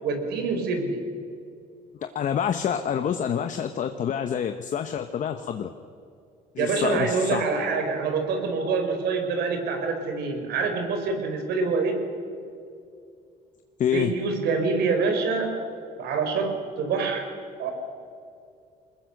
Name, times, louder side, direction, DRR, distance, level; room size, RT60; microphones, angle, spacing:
voice 1, 0.0-1.0 6.6-12.0 13.9-15.6 16.0-17.2 17.6-17.7, right 4 dB, 75° right, 5 dB, 4.4 m, -26 dB
voice 2, 2.0-5.7 6.5-7.4 13.8-14.1, left 8 dB, 50° left, 7 dB, 1.0 m, -27 dB
23.0 x 20.5 x 6.6 m, 2.4 s
cardioid pair, 110°, 17 cm